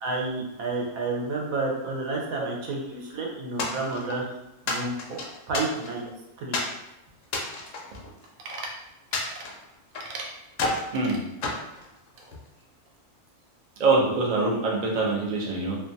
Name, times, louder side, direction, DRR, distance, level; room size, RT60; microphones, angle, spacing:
voice 1, 0.0-4.2 4.7-5.2 5.5-6.0 6.4-6.5, right 3 dB, 90° right, -1 dB, 1.1 m, -30 dB
sound 1, 3.6-4.2 4.7-6.1 6.5-6.8 7.2-8.6 9.1-10.1 10.5-10.9 11.4-12.5, left 3 dB, 70° left, 0.8 m, -31 dB
voice 2, 13.8-15.8, right 3 dB, 70° right, -2 dB, 0.4 m, -24 dB
2.7 x 2.2 x 2.6 m, 0.91 s
omnidirectional pair, 1.4 m